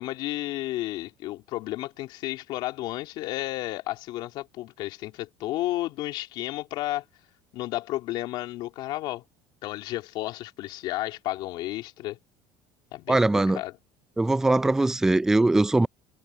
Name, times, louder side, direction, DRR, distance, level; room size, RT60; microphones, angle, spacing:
voice 1, 0.0-7.0 7.5-9.2 9.6-12.2 12.9-13.8, left 16 dB, 60° left, 2.8 m, -32 dB
voice 2, 13.1-13.6 14.2-15.9, right 2 dB, 5° right, 0.4 m, -21 dB
cardioid pair, 140°, 9 cm